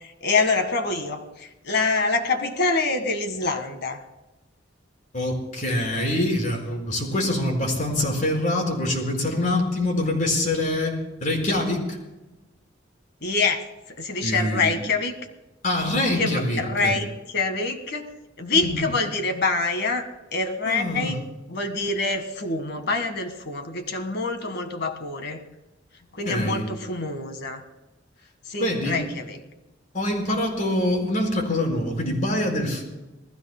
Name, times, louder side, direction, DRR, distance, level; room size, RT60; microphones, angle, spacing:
voice 1, 0.0-4.0 13.2-13.6 14.0-15.1 16.2-18.1 18.4-21.2 21.5-25.4 26.2-27.6 28.5-29.4, left 3 dB, 60° left, 6 dB, 1.7 m, -26 dB
voice 2, 5.1-12.0 14.2-14.8 15.6-17.0 18.5-18.9 20.6-21.1 26.2-26.6 28.6-29.0 29.9-32.8, left 1 dB, 45° left, 1 dB, 4.7 m, -25 dB
28.5 x 19.0 x 2.2 m, 1.1 s
head